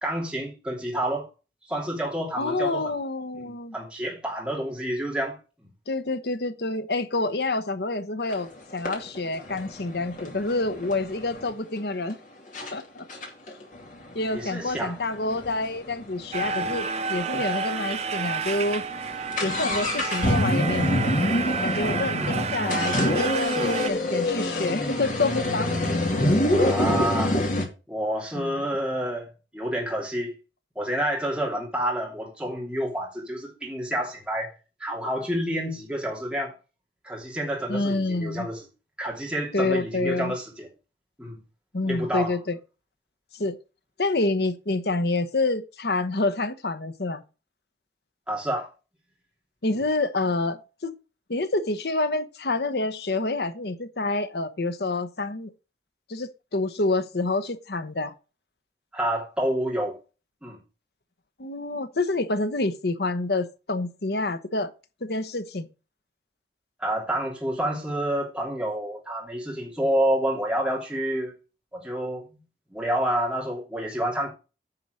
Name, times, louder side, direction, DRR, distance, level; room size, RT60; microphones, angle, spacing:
voice 1, 0.0-1.3 1.7-2.9 3.7-5.4 14.3-15.0 21.8-22.3 23.6-23.8 26.6-27.4 27.9-29.3 29.5-30.4 30.7-34.5 34.8-36.5 37.0-38.6 39.0-40.7 41.2-41.4 41.8-42.4 48.3-48.7 58.9-60.0 60.4-60.6 66.8-71.3 71.7-72.2 72.7-74.3, right 1 dB, 5° right, 3.0 m, -28 dB
voice 2, 2.4-3.7 5.9-12.2 12.7-13.1 13.5-13.6 14.1-18.8 19.4-20.9 21.6-25.7 28.3-28.6 37.7-38.5 39.5-40.3 41.7-42.6 43.3-43.6 44.0-47.2 49.6-50.9 51.3-55.5 56.1-58.1 61.4-64.7 65.0-65.7, left 2 dB, 70° left, 1.0 m, -27 dB
sound 1, 8.3-8.4 8.8-11.5 12.1-12.2 12.5-12.7 13.1-16.8 17.1-17.2 17.3-17.4 18.1-18.2 18.5-27.7, left 1 dB, 45° left, 2.5 m, -26 dB
sound 2, 16.3-23.9, right 5 dB, 40° right, 0.7 m, -30 dB
9.8 x 4.7 x 6.3 m
head